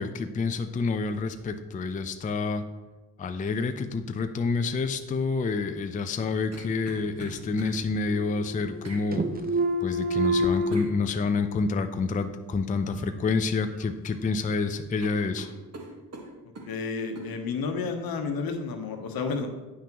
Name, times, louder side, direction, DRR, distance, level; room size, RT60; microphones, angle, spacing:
voice 1, 0.0-2.6 3.2-9.2 9.8-15.5, left 4 dB, 20° left, 8 dB, 0.4 m, -28 dB
sound 1, 6.0-7.8 8.8-9.1 10.7-10.9 12.9-13.2 13.6-14.2 14.5-14.7 15.0-16.7 17.2-17.3, right 2 dB, 40° right, 1.4 m, -43 dB
sound 2, 6.6-7.6 7.9-8.9 9.1-10.7, right 1 dB, 25° right, 0.7 m, -28 dB
voice 2, 16.7-19.5, left 4 dB, 65° left, 5 dB, 1.0 m, -31 dB
8.4 x 5.9 x 2.9 m, 1.2 s
cardioid pair, 70°, 38 cm